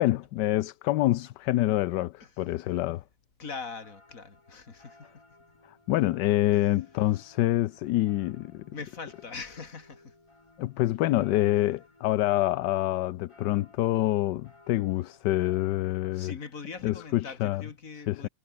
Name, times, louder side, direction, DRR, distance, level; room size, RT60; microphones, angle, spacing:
voice 1, 0.0-3.0 5.9-8.7 10.6-16.3 16.8-17.6 18.1-18.3, left 16 dB, 80° left, 1.2 m, -26 dB
voice 2, 3.4-5.2 6.5-6.7 8.7-10.1 16.1-18.3, left 4 dB, 50° left, 2.8 m, -42 dB
sound 1, 3.8-16.2, left 2 dB, 15° left, 2.0 m, -58 dB
omnidirectional pair, 1.9 m